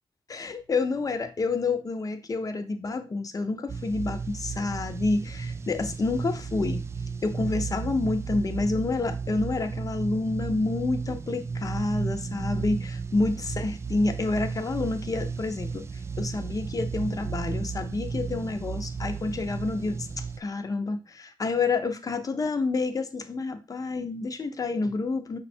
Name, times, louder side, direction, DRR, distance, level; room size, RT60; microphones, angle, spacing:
voice 1, 0.3-6.9 7.2-25.4, left 3 dB, 35° left, 7 dB, 0.7 m, -29 dB
sound 1, 3.7-20.4, right 5 dB, 30° right, 0.3 m, -34 dB
5.3 x 2.1 x 4.3 m, 0.31 s
cardioid pair, 65°, 10 cm